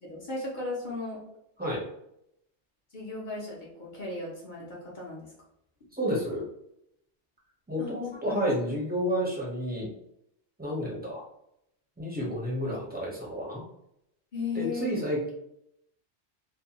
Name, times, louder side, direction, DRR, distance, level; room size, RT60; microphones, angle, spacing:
voice 1, 0.0-1.2 2.9-5.3 7.8-8.4 14.3-14.9, left 3 dB, 50° left, -4 dB, 0.7 m, -36 dB
voice 2, 5.9-6.4 7.7-9.9 10.6-11.2 12.0-13.6 14.5-15.3, equal, 10° right, -4 dB, 0.6 m, -30 dB
2.6 x 2.1 x 2.8 m, 0.77 s
omnidirectional pair, 1.2 m